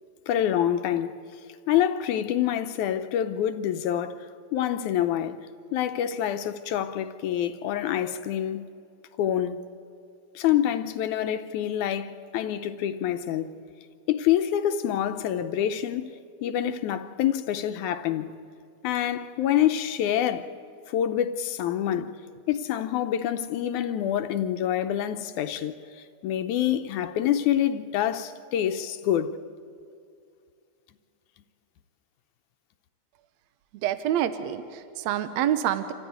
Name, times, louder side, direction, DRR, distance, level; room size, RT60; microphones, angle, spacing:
voice 1, 0.3-1.1 1.7-4.3 4.5-5.4 5.7-8.7 9.2-9.6 10.4-13.5 14.1-16.1 16.4-18.3 18.8-20.5 20.9-22.1 22.5-25.8 26.2-29.3, left 10 dB, 85° left, 2.2 m, -26 dB
voice 2, 33.8-35.9, right 11 dB, 75° right, 2.0 m, -27 dB
27.0 x 14.0 x 9.3 m
omnidirectional pair, 3.3 m